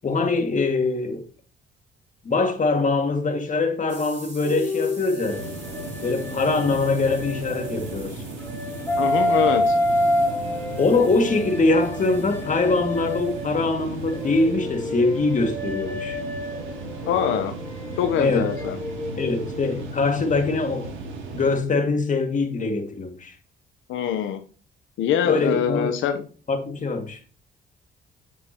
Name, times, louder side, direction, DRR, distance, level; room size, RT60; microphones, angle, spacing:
voice 1, 0.0-1.3 2.2-5.4 6.0-8.2 10.8-16.2 18.2-18.5 19.2-20.9 21.3-23.3 25.2-25.9 26.5-27.2, left 3 dB, 40° left, 2.0 m, -23 dB
sound 1, 3.9-14.5, right 2 dB, 35° right, 4.8 m, -48 dB
sound 2, 4.4-8.0 8.4-13.7 14.1-19.7, left 1 dB, 10° left, 1.6 m, -28 dB
sound 3, 5.3-21.6, right 3 dB, 85° right, 2.6 m, -36 dB
voice 2, 9.0-9.8 17.1-17.5 18.0-18.8 23.9-24.4 25.0-26.2, left 9 dB, 85° left, 0.9 m, -24 dB
8.0 x 7.7 x 2.9 m
cardioid pair, 90°, 20 cm